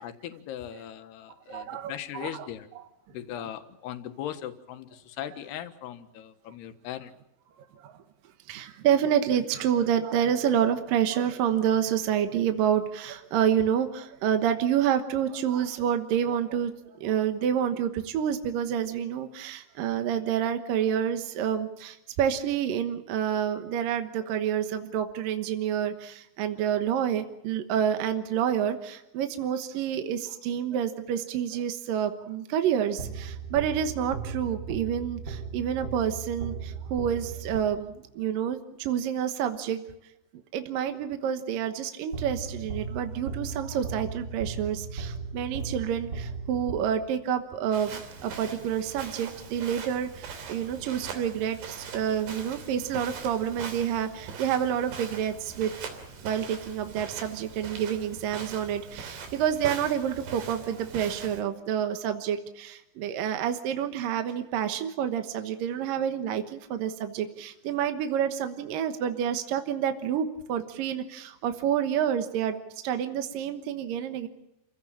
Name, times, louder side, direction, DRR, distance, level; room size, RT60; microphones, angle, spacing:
voice 1, 0.0-2.7 3.1-7.1 10.4-10.6, left 11 dB, 70° left, 8 dB, 3.3 m, -38 dB
voice 2, 1.5-2.8 3.4-3.5 7.8-7.9 8.5-39.8 40.5-55.7 56.2-74.3, right 9 dB, 65° right, 7 dB, 2.4 m, -28 dB
sound 1, 33.0-38.1 42.1-47.3, right 4 dB, 30° right, 2.4 m, -37 dB
Walk footsteps, 47.7-61.4, right 5 dB, 80° right, 5.4 m, -41 dB
29.0 x 16.5 x 8.6 m, 0.84 s
omnidirectional pair, 5.2 m